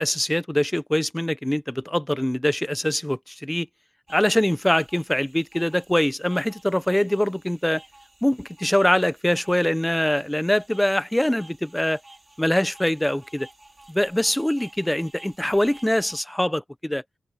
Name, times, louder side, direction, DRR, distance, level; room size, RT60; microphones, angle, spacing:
voice 1, 0.0-3.7 4.1-7.8 8.2-12.0 12.4-13.5 13.9-17.0, left 1 dB, 5° left, 0.8 m, -23 dB
sound 1, 4.1-16.2, right 2 dB, 15° right, 2.8 m, -51 dB
open air
wide cardioid pair, 140°, 0 cm